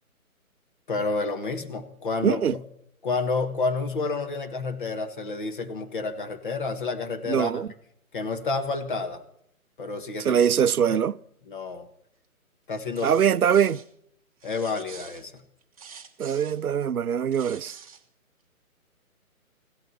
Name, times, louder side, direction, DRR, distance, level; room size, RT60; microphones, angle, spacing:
voice 1, 0.9-2.6 3.0-7.6 8.1-9.2 9.8-10.4 10.9-11.0 11.5-11.9 12.7-13.2 14.4-15.4, left 3 dB, 35° left, 1.5 m, -30 dB
voice 2, 2.2-2.5 7.3-7.7 10.2-11.1 13.0-13.8 16.2-17.8, right 8 dB, 75° right, 0.6 m, -22 dB
sound 1, 12.9-13.9 14.4-16.6 17.1-18.0, right 6 dB, 25° right, 1.0 m, -46 dB
16.0 x 12.0 x 6.0 m
figure-of-eight pair, 145°, 44 cm